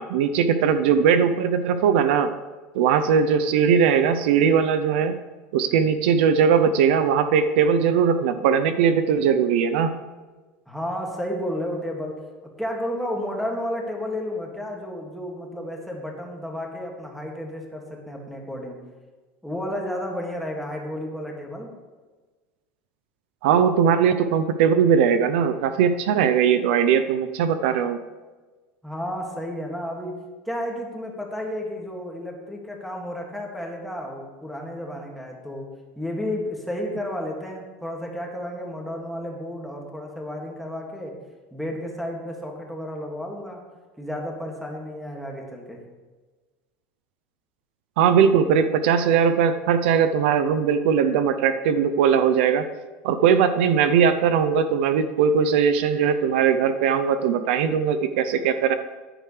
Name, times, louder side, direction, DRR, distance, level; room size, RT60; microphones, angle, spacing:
voice 1, 0.0-2.3 2.7-5.2 5.5-9.9 23.4-28.0 48.0-52.6 53.0-58.7, right 7 dB, 85° right, 10 dB, 0.7 m, -20 dB
voice 2, 10.7-12.2 12.6-18.8 19.4-21.7 28.8-30.1 30.5-35.7 36.0-41.1 41.5-43.6 44.0-45.8, left 1 dB, ahead, -1 dB, 2.2 m, -32 dB
14.0 x 10.0 x 3.3 m, 1.3 s
supercardioid pair, 135°, 6 cm